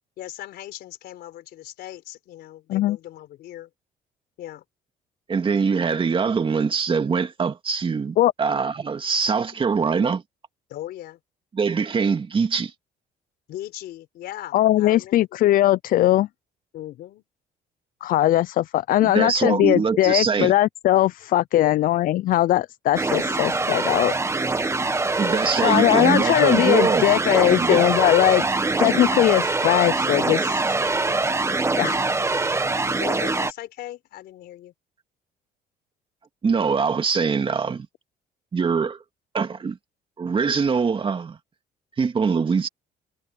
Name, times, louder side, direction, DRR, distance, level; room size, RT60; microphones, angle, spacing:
voice 1, 0.2-3.7 4.4-4.6 10.7-11.2 13.5-15.2 16.7-17.2 21.6-21.8 25.2-25.4 32.2-32.4 33.0-34.7, left 13 dB, 75° left, 4.1 m, -38 dB
voice 2, 5.3-10.2 11.5-12.7 19.0-20.5 25.2-27.0 27.3-27.9 36.4-37.9 38.5-39.0 39.3-39.8 40.2-41.4 42.0-42.7, right 5 dB, 30° right, 2.2 m, -23 dB
voice 3, 14.5-16.3 18.0-24.1 25.6-28.5 28.8-30.8 31.1-31.2 31.8-32.0, left 14 dB, 55° left, 0.4 m, -20 dB
sound 1, 22.9-33.5, right 3 dB, 15° right, 1.5 m, -23 dB
cardioid pair, 110°, 17 cm